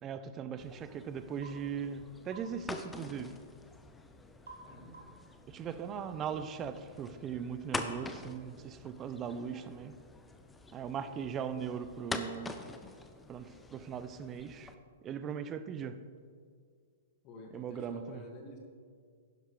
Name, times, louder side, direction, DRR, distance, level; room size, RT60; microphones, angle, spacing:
voice 1, 0.0-3.4 5.5-10.0 10.7-12.5 13.3-14.7 15.0-16.0 17.5-18.2, right 7 dB, 25° right, 0.6 m, -39 dB
sound 1, 0.6-14.7, left 3 dB, 10° left, 0.7 m, -46 dB
sound 2, 1.4-1.6 2.3-2.5 4.5-4.7 4.9-5.3, right 3 dB, 75° right, 2.0 m, -50 dB
voice 2, 4.6-5.0 17.2-18.6, left 1 dB, 35° left, 2.0 m, -49 dB
12.0 x 10.0 x 3.3 m
figure-of-eight pair, 110°, 0 cm